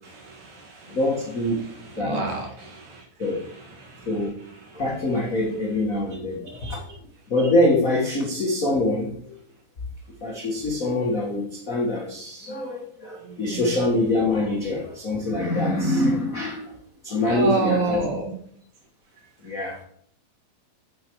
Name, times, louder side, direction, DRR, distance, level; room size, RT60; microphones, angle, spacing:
voice 1, 0.0-1.0 1.5-5.1 6.5-6.8 13.2-13.8 17.2-18.3 19.2-19.3, right 3 dB, 55° right, 0 dB, 3.0 m, -31 dB
voice 2, 0.9-1.6 2.0-2.2 3.2-3.5 4.0-4.4 4.7-6.9 7.3-9.4 10.2-16.8 17.0-18.0 19.4-19.8, left 1 dB, 70° left, -3 dB, 0.8 m, -24 dB
8.4 x 7.6 x 4.6 m, 0.65 s
omnidirectional pair, 4.2 m